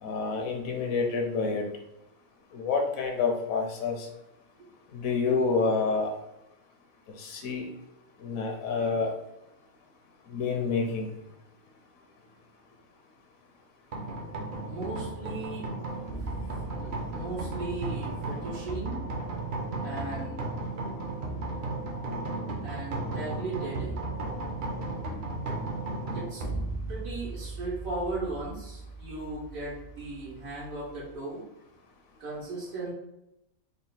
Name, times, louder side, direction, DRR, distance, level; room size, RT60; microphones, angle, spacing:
voice 1, 0.0-1.6 2.5-4.1 4.9-6.1 7.2-7.7 8.2-9.1 10.3-11.1, left 4 dB, 85° left, 2 dB, 1.1 m, -28 dB
sound 1, 13.9-31.1, right 2 dB, 60° right, 0.9 m, -35 dB
voice 2, 14.6-15.7 16.1-19.0 19.8-20.4 22.6-23.9 26.1-26.4 26.9-31.4 32.2-32.9, right 2 dB, 85° right, -7 dB, 1.6 m, -37 dB
3.8 x 2.2 x 3.9 m, 0.88 s
omnidirectional pair, 1.4 m